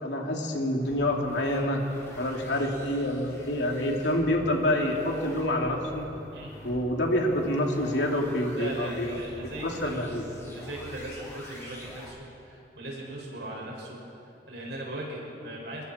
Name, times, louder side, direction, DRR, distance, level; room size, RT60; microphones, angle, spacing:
voice 1, 0.0-1.8 2.1-6.1 6.6-9.1 9.6-10.2, left 1 dB, 85° left, 0 dB, 3.0 m, -27 dB
sound 1, 0.8-12.1, equal, 15° left, 6.2 m, -45 dB
voice 2, 6.3-6.7 8.5-14.0 14.5-15.8, right 1 dB, 85° right, -2 dB, 6.1 m, -39 dB
27.5 x 21.5 x 4.5 m, 2.7 s
head